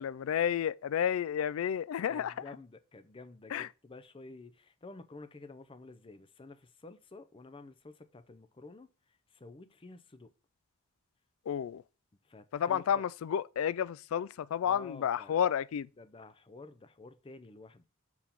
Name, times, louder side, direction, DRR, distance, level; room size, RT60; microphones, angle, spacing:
voice 1, 0.0-2.3 3.5-3.7 11.5-11.8 12.5-15.9, left 8 dB, 80° left, 0.3 m, -31 dB
voice 2, 2.1-8.9 9.3-10.3 12.2-13.0 14.6-15.5 16.0-17.9, left 3 dB, 25° left, 0.5 m, -51 dB
5.7 x 4.8 x 5.2 m
head